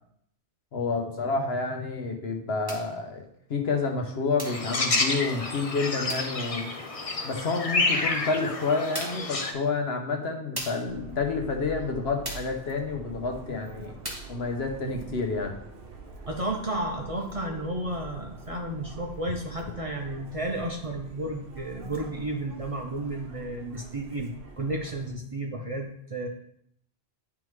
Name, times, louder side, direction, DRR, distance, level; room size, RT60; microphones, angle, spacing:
voice 1, 0.7-3.2 3.5-6.7 7.2-14.0 14.3-15.6, left 4 dB, 65° left, 3 dB, 1.1 m, -29 dB
sound 1, 2.7-3.0 4.4-4.7 6.1-6.4 8.1-8.2 8.9-9.3 10.6-10.9 12.2-12.6 14.0-14.4, right 1 dB, 20° right, 1.4 m, -37 dB
sound 2, 4.4-9.5, left 3 dB, 35° left, 0.6 m, -29 dB
Subway metro underground, 10.9-25.1, right 2 dB, 60° right, 1.0 m, -45 dB
voice 2, 16.3-26.3, right 1 dB, 35° right, 1 dB, 0.6 m, -32 dB
10.5 x 3.6 x 3.1 m, 0.70 s
omnidirectional pair, 1.2 m